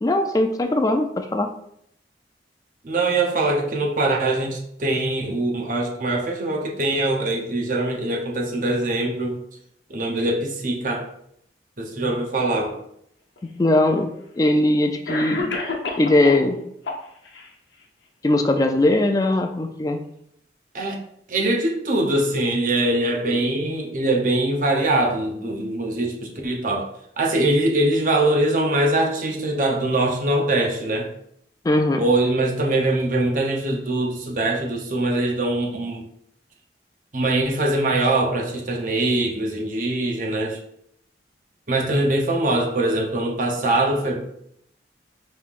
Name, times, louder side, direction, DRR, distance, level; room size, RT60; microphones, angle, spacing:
voice 1, 0.0-1.5 13.6-15.6 16.0-16.6 18.2-20.0 31.6-32.0, left 1 dB, 20° left, 6 dB, 0.3 m, -20 dB
voice 2, 2.8-9.3 9.9-11.1 11.8-12.8 20.7-21.0 21.3-26.9 27.2-31.1 32.0-36.0 37.1-40.6 41.7-44.2, right 2 dB, 45° right, 0 dB, 0.7 m, -22 dB
Cough, 13.4-13.5 14.5-14.6 15.1-16.5 16.8-17.5, left 3 dB, 90° left, 0.7 m, -29 dB
5.3 x 3.2 x 2.4 m, 0.73 s
head